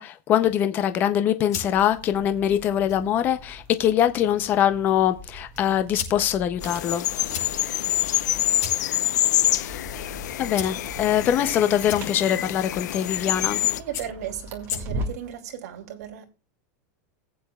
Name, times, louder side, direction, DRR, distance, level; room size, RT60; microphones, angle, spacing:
voice 1, 0.0-7.1 9.4-9.8 10.4-13.6, left 10 dB, 20° left, 0.5 m, -23 dB
sound 1, 1.2-15.3, left 7 dB, 60° left, 5.6 m, -41 dB
sound 2, 1.6-15.4, equal, 25° right, 2.1 m, -41 dB
sound 3, 6.6-13.8, left 13 dB, 75° left, 0.7 m, -26 dB
voice 2, 13.6-16.2, right 10 dB, 60° right, 2.7 m, -36 dB
20.0 x 8.6 x 2.3 m
supercardioid pair, 180°, 9 cm